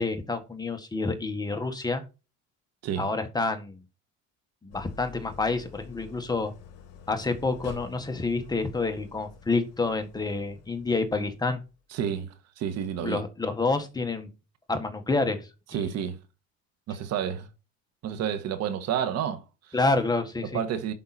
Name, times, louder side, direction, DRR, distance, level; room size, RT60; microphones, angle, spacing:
voice 1, 0.0-2.0 3.0-3.8 4.6-6.5 7.1-11.6 13.0-14.3 14.7-15.8 19.7-20.6, left 3 dB, 15° left, 1.6 m, -28 dB
Idling, 4.7-11.8, left 7 dB, 55° left, 2.8 m, -48 dB
voice 2, 11.9-13.2 15.7-16.2 16.9-17.5 18.0-19.8 20.5-20.9, right 9 dB, 60° right, 1.5 m, -30 dB
11.0 x 5.7 x 4.3 m
cardioid pair, 125°, 30 cm